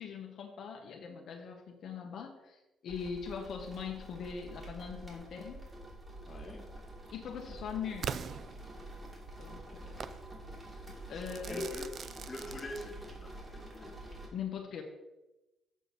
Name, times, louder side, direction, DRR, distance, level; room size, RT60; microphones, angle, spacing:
voice 1, 0.0-5.6 7.1-8.1 9.4-10.0 11.1-11.7 14.3-14.8, left 6 dB, 65° left, 2 dB, 1.2 m, -41 dB
sound 1, 2.9-14.3, right 1 dB, 25° right, 2.7 m, -48 dB
voice 2, 6.3-6.7 11.1-12.0 12.3-14.3, left 2 dB, 30° left, 2 dB, 1.7 m, -44 dB
Crackle / Fireworks, 8.0-9.2 10.0-10.2 11.2-13.2, right 7 dB, 55° right, 0.5 m, -42 dB
7.7 x 5.0 x 6.7 m, 1.0 s
cardioid pair, 90°, 0 cm